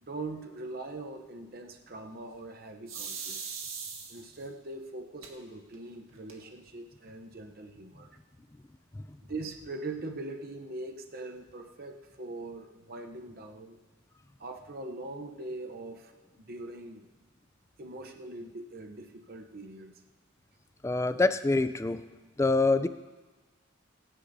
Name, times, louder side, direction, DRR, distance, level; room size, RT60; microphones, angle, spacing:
voice 1, 0.0-3.4 4.1-8.2 9.2-13.8 14.4-17.1 17.8-19.9, right 2 dB, 45° right, 4 dB, 0.7 m, -42 dB
sound 1, 2.9-4.4 5.2-5.3 5.7-5.8 6.1-6.7, right 6 dB, 75° right, 1.8 m, -39 dB
voice 2, 20.8-22.0 22.4-22.9, left 3 dB, 15° left, 10 dB, 0.3 m, -25 dB
24.0 x 10.0 x 2.7 m, 1.2 s
head